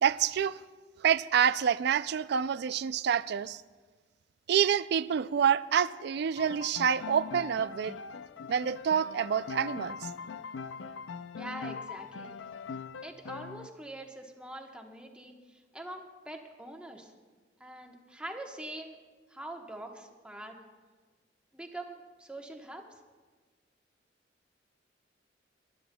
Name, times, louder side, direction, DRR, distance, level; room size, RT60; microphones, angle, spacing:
voice 1, 0.0-0.6 1.0-3.6 4.5-8.0 8.5-10.0, right 8 dB, 65° right, 0.3 m, -27 dB
Piano, 6.4-13.7, left 5 dB, 75° left, 0.4 m, -41 dB
voice 2, 11.4-12.4 13.0-17.1 17.6-19.0 19.3-20.6 21.5-22.9, right 1 dB, 5° right, 1.1 m, -44 dB
26.0 x 12.0 x 2.2 m
head